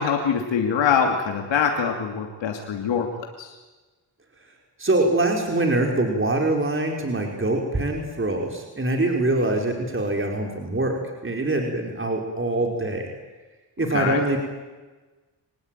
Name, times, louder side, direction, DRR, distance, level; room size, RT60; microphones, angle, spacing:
voice 1, 0.0-3.1 3.4-3.5 13.9-14.2, left 7 dB, 80° left, 3 dB, 2.8 m, -23 dB
voice 2, 4.8-13.1 13.8-14.4, right 2 dB, 30° right, 2 dB, 4.9 m, -24 dB
26.0 x 19.5 x 9.3 m, 1.2 s
cardioid pair, 65°, 44 cm